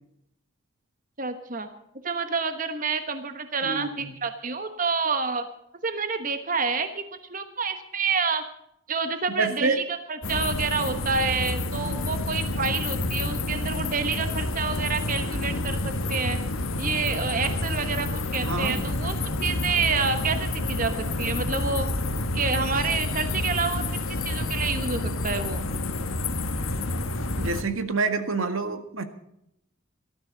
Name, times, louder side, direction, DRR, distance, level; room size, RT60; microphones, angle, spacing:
voice 1, 1.2-1.7 2.0-5.4 5.8-7.0 7.3-8.4 8.9-16.4 16.8-21.9 22.3-23.8 24.1-25.7, right 4 dB, 40° right, 8 dB, 1.2 m, -28 dB
voice 2, 3.6-4.2 9.4-9.8 18.4-18.8 27.4-29.0, right 3 dB, 80° right, 8 dB, 1.7 m, -27 dB
sound 1, 10.2-27.6, left 2 dB, 90° left, 1.4 m, -29 dB
19.0 x 13.5 x 4.0 m, 0.76 s
head